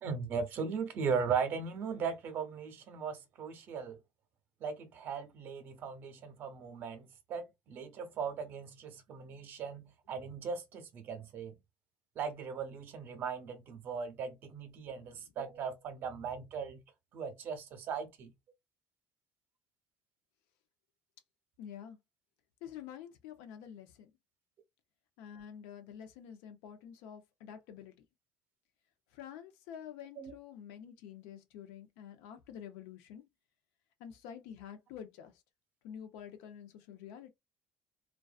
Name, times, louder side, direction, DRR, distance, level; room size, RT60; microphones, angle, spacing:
voice 1, 0.0-4.0 4.6-11.6 12.2-16.8 17.1-18.3 30.2-30.3, right 6 dB, 55° right, 0.8 m, -38 dB
voice 2, 21.6-22.0 22.6-24.1 25.2-27.9 29.1-33.2 34.0-35.3 35.8-37.3, left 9 dB, 85° left, 0.6 m, -48 dB
2.5 x 2.3 x 2.3 m
supercardioid pair, 100°, 4 cm